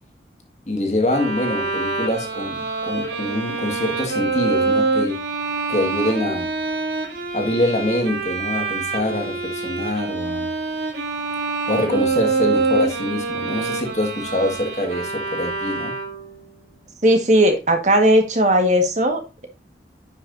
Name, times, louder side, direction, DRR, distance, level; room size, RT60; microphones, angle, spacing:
voice 1, 0.7-5.2 5.7-6.5 7.3-10.5 11.7-15.9, left 1 dB, 40° left, 1.8 m, -24 dB
Bowed string instrument, 1.1-16.4, right 3 dB, 70° right, 2.6 m, -25 dB
voice 2, 17.0-19.5, equal, 40° right, 1.6 m, -17 dB
10.0 x 5.8 x 2.6 m
head